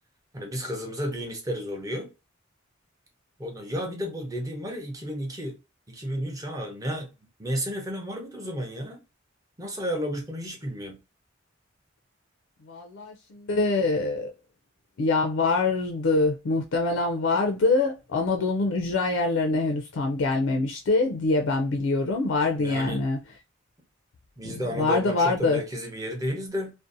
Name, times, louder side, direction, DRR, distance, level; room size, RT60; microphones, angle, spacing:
voice 1, 0.3-2.1 3.4-5.6 5.9-7.1 7.4-9.0 9.6-11.0 22.6-23.0 24.4-26.7, equal, 15° right, 0.6 m, -32 dB
voice 2, 12.7-14.3 15.0-23.2 24.4-25.6, left 3 dB, 70° left, 0.4 m, -24 dB
2.6 x 2.1 x 2.5 m
head